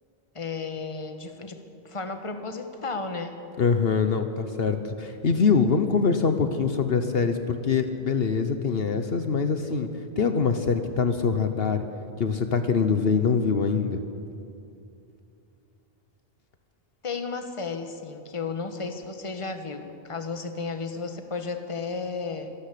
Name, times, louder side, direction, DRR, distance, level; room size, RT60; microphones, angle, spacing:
voice 1, 0.3-1.6 1.8-3.4 17.0-22.5, left 4 dB, 30° left, 7 dB, 1.3 m, -33 dB
voice 2, 3.6-9.9 10.2-11.8 12.2-14.0, left 5 dB, 65° left, 8 dB, 1.2 m, -24 dB
25.0 x 12.5 x 8.4 m, 2.7 s
omnidirectional pair, 1.1 m